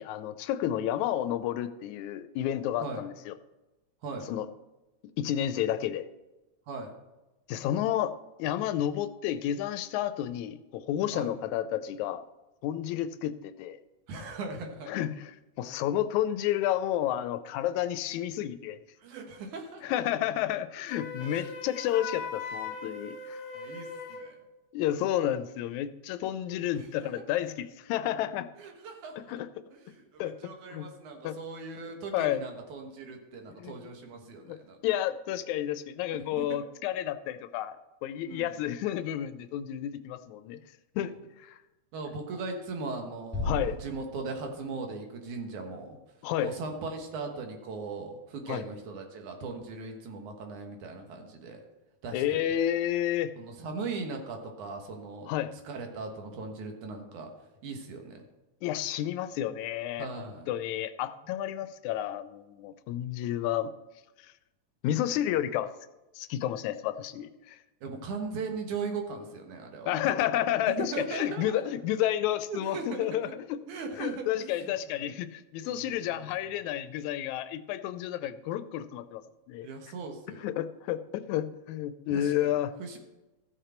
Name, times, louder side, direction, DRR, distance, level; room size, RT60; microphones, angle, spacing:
voice 1, 0.0-3.3 4.3-4.5 5.2-6.1 7.5-8.1 8.4-12.2 12.6-13.8 14.9-15.3 15.6-18.8 19.8-23.4 24.7-28.5 29.3-29.5 30.2-30.9 31.2-31.4 32.1-32.4 33.6-33.9 34.5-34.6 34.8-37.8 38.0-40.6 41.0-41.1 41.4-41.6 43.4-43.8 46.2-46.5 48.5-48.6 52.1-53.3 55.3-55.6 58.6-60.1 60.5-63.7 64.2-64.3 64.8-65.7 66.2-67.6 69.9-73.6 74.0-79.2 79.5-79.7 80.4-82.7, left 11 dB, 85° left, 12 dB, 1.9 m, -31 dB
voice 2, 14.1-15.0 19.0-20.0 21.2-21.5 23.5-24.4 26.8-27.1 28.6-29.3 29.7-34.8 36.1-36.6 38.2-38.6 41.0-41.1 41.9-46.0 46.4-51.6 52.0-52.2 52.5-52.7 53.4-55.3 55.6-57.3 57.6-58.3 60.0-60.5 67.8-69.9 70.7-71.6 72.5-73.3 73.7-75.1 75.6-76.6 79.6-80.5 82.1-82.5 82.8-83.0, right 4 dB, 85° right, 3 dB, 2.8 m, -39 dB
Wind instrument woodwind instrument, 20.9-24.3, left 5 dB, 45° left, 1.3 m, -39 dB
Bass drum, 43.3-44.7, left 2 dB, 5° right, 2.4 m, -35 dB
14.5 x 6.7 x 4.4 m, 1.1 s
omnidirectional pair, 3.4 m